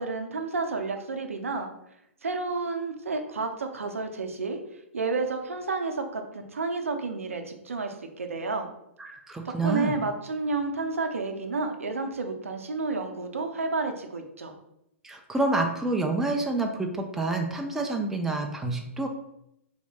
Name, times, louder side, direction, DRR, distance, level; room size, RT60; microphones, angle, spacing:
voice 1, 0.0-1.7 2.2-4.6 4.9-8.7 9.4-14.5, right 3 dB, 80° right, 5 dB, 0.5 m, -31 dB
voice 2, 9.0-10.0 15.0-19.1, right 2 dB, 5° right, 3 dB, 0.3 m, -28 dB
4.2 x 2.7 x 2.2 m, 0.80 s
figure-of-eight pair, 115°, 7 cm